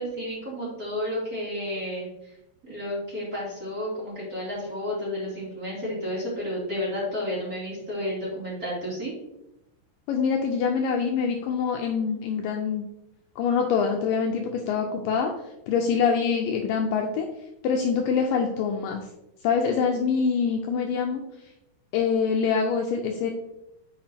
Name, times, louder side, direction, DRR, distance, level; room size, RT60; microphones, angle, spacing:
voice 1, 0.0-2.3 2.6-9.1, left 1 dB, 25° right, -8 dB, 2.7 m, -31 dB
voice 2, 10.1-12.9 13.4-15.3 15.7-17.3 17.6-19.1 19.4-21.2 21.9-23.3, left 6 dB, 90° left, 2 dB, 1.9 m, -25 dB
8.6 x 5.8 x 2.8 m, 0.88 s
omnidirectional pair, 4.6 m